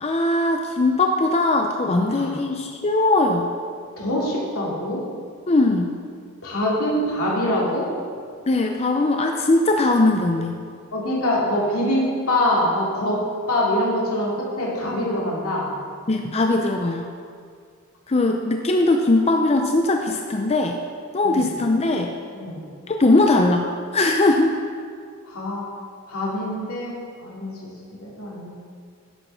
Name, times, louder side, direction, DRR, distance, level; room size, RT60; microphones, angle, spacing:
voice 1, 0.0-3.5 5.5-5.9 8.5-10.6 16.1-17.1 18.1-20.8 21.1-22.1 22.9-24.5, left 2 dB, 30° left, 3 dB, 0.5 m, -20 dB
voice 2, 1.8-2.3 4.0-5.0 6.4-7.9 10.9-13.2 13.5-15.7 21.2-21.4 22.3-22.6 25.3-25.6 26.1-27.7 28.0-28.6, left 1 dB, 80° left, -5 dB, 2.7 m, -24 dB
10.0 x 6.7 x 5.6 m, 2.1 s
head